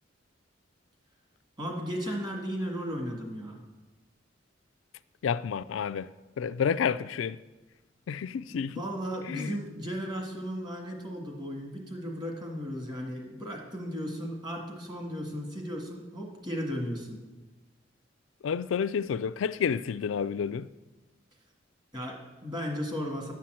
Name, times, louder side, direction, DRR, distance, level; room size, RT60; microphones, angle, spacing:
voice 1, 1.6-3.6 8.7-17.2 21.9-23.3, equal, 25° right, 1.8 m, -35 dB
voice 2, 5.2-6.1 6.4-7.4 8.1-8.8 9.2-9.6 18.4-20.7, left 7 dB, 85° left, 0.3 m, -30 dB
10.0 x 5.7 x 7.6 m
head